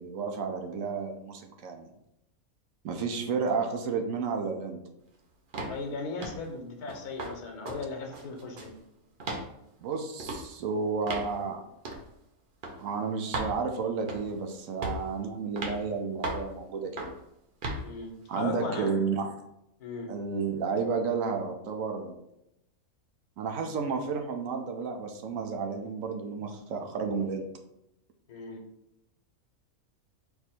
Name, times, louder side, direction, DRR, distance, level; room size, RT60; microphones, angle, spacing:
voice 1, 0.0-1.9 2.8-4.8 9.8-11.6 12.8-17.1 18.3-19.3 20.1-22.2 23.4-27.5, right 5 dB, 70° right, 4 dB, 1.0 m, -32 dB
sound 1, 5.5-5.8 6.2-6.5 6.9-7.3 7.6-7.8 8.1-8.8 9.2-9.5 10.2-10.4 11.1-11.3 11.8-12.0 12.6-12.8 13.3-13.5 14.1-14.4 14.8-15.1 15.6-15.8 16.2-16.5 17.0-17.2 17.6-17.8, right 2 dB, 50° right, 0.7 m, -35 dB
voice 2, 5.7-8.7 17.8-18.9 19.8-20.1 28.3-28.6, left 3 dB, 85° left, 2 dB, 1.4 m, -37 dB
4.5 x 2.6 x 4.3 m, 0.82 s
omnidirectional pair, 1.6 m